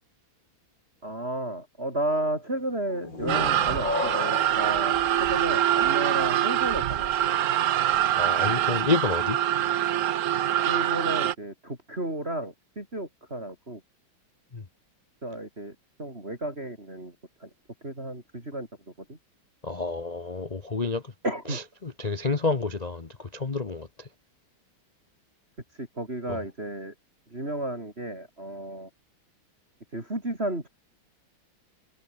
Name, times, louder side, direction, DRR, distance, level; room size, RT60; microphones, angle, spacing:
voice 1, 1.0-7.4 10.6-13.8 15.2-17.1 17.4-17.5 17.8-18.7 19.1-19.2 21.2-21.6 25.7-26.9 27.3-28.9 29.9-30.7, right 1 dB, 30° right, 6.1 m, -33 dB
sound 1, 2.9-6.4, left 2 dB, 60° left, 8.6 m, -34 dB
sound 2, 3.3-11.3, right 11 dB, 85° right, 0.6 m, -24 dB
voice 2, 8.2-9.4 14.5-14.6 19.6-21.0 21.5-24.1 26.3-26.4, left 3 dB, 30° left, 0.8 m, -29 dB
omnidirectional pair, 2.2 m